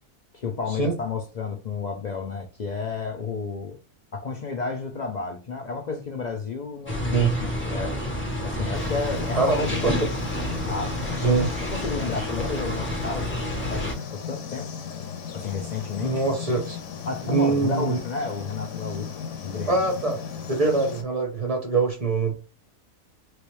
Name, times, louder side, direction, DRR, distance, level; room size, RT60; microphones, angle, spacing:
voice 1, 0.3-3.8 4.1-8.0 8.4-9.8 10.6-14.7 15.3-16.2 17.0-19.2 19.4-19.8, left 5 dB, 80° left, 0.3 m, -32 dB
sound 1, 6.9-13.9, equal, 10° left, 0.7 m, -29 dB
sound 2, 8.7-21.0, left 7 dB, 60° left, 1.0 m, -36 dB
voice 2, 9.3-9.9 11.2-11.5 16.0-16.8 17.2-18.0 19.7-20.2 20.5-22.3, right 4 dB, 35° right, 0.6 m, -23 dB
3.1 x 3.0 x 3.1 m
omnidirectional pair, 1.5 m